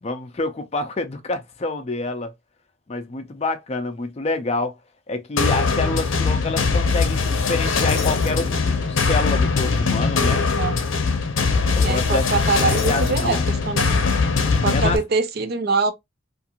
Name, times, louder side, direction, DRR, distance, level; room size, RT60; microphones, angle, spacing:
voice 1, 0.0-2.3 2.9-4.8 5.1-10.5 11.7-12.2 12.6-13.4 14.7-15.0, left 2 dB, 30° left, 0.4 m, -27 dB
sound 1, 5.4-15.0, left 4 dB, 70° left, 0.6 m, -21 dB
voice 2, 10.2-10.7 11.8-14.0 14.6-15.9, right 4 dB, 50° right, 0.4 m, -24 dB
2.5 x 2.4 x 2.8 m
head